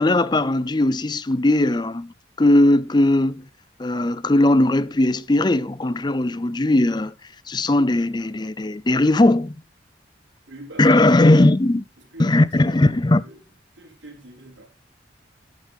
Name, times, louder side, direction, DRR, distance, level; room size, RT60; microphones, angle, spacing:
voice 1, 0.0-3.4 3.8-7.1 7.5-9.6 10.8-11.8 12.2-13.2, left 1 dB, 25° left, 0.5 m, -18 dB
voice 2, 10.5-11.2 12.0-13.4 13.7-14.7, right 1 dB, 90° right, 4.7 m, -43 dB
14.0 x 9.6 x 3.5 m
head